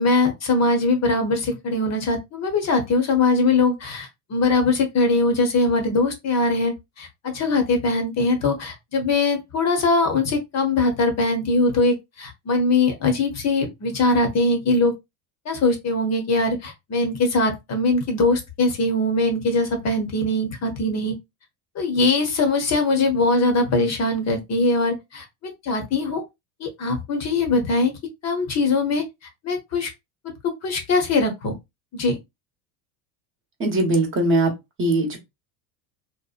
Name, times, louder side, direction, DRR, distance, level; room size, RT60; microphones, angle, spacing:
voice 1, 0.0-14.9 15.5-21.1 21.7-25.2 25.6-26.2 26.6-27.9 28.2-29.0 29.4-29.9 30.6-31.5 31.9-32.2, left 3 dB, 35° left, 0.8 m, -21 dB
voice 2, 33.6-34.5 34.8-35.2, right 2 dB, 30° right, 0.9 m, -20 dB
2.8 x 2.1 x 2.4 m
supercardioid pair, 105°, 45 cm